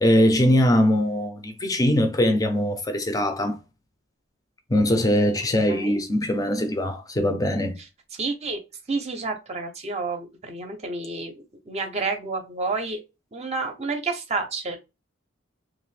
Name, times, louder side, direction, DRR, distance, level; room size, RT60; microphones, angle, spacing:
voice 1, 0.0-3.6 4.7-7.8, equal, 20° left, 0.6 m, -21 dB
voice 2, 5.7-6.0 7.8-8.6 8.9-13.0 13.3-14.8, right 3 dB, 35° right, 0.7 m, -30 dB
3.0 x 2.5 x 3.2 m
head